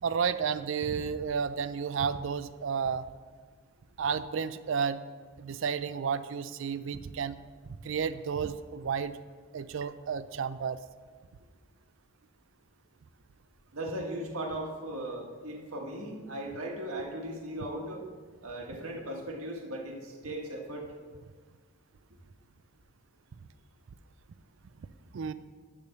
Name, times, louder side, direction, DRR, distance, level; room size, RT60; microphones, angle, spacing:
voice 1, 0.0-3.1 4.0-5.0 5.4-7.4 7.8-9.2 9.5-10.8 25.1-25.3, right 6 dB, 60° right, 14 dB, 0.4 m, -31 dB
voice 2, 13.7-18.0 18.4-20.9, right 1 dB, 85° right, 0 dB, 1.6 m, -37 dB
10.5 x 3.5 x 7.1 m, 1.6 s
head